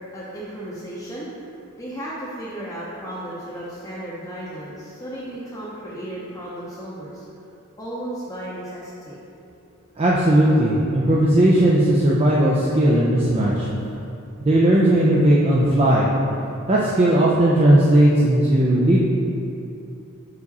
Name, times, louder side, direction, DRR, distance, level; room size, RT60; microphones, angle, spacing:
voice 1, 0.1-1.3 1.8-7.2 7.8-9.2, right 1 dB, 15° left, -9 dB, 0.7 m, -34 dB
voice 2, 10.0-13.7 14.4-16.1 16.7-19.0, right 1 dB, 30° right, -5 dB, 0.4 m, -17 dB
4.8 x 4.8 x 4.1 m, 2.7 s
head